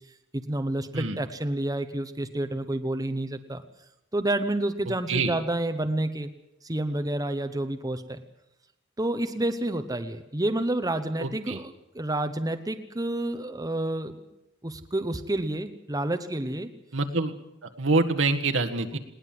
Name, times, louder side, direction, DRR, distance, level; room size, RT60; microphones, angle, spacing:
voice 1, 0.3-3.6 4.1-6.3 6.6-8.2 9.0-14.1 14.6-16.7 18.9-19.0, right 1 dB, 20° right, 8 dB, 1.0 m, -29 dB
voice 2, 11.2-11.6 16.9-17.3 17.6-19.0, right 3 dB, 70° right, 5 dB, 1.8 m, -26 dB
20.5 x 18.5 x 7.7 m, 0.88 s
head